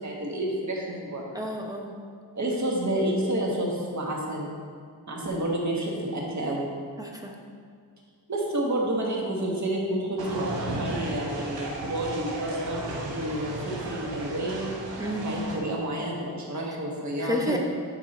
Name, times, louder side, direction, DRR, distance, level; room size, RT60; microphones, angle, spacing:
voice 1, 0.0-1.4 2.3-4.5 5.1-6.7 8.3-12.8 13.1-14.7 15.0-17.6, right 1 dB, 40° right, -2 dB, 1.4 m, -29 dB
voice 2, 1.3-1.9 7.0-7.3 15.0-15.3 17.2-17.6, equal, 10° right, 0 dB, 0.8 m, -30 dB
sound 1, 10.2-15.6, right 2 dB, 85° right, 1.2 m, -35 dB
10.0 x 3.6 x 4.2 m, 2.1 s
wide cardioid pair, 110°, 42 cm